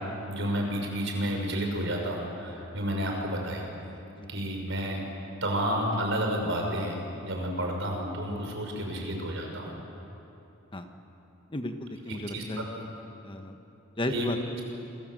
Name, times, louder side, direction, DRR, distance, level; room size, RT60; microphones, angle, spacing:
voice 1, 0.3-3.6 4.3-5.0 5.4-7.0 7.2-9.8 12.3-12.4 14.1-14.2, equal, 65° right, 1 dB, 5.9 m, -30 dB
voice 2, 11.5-12.9 13.2-13.6 14.0-14.8, left 1 dB, 25° left, 6 dB, 1.4 m, -35 dB
28.0 x 24.5 x 7.8 m, 3.0 s
head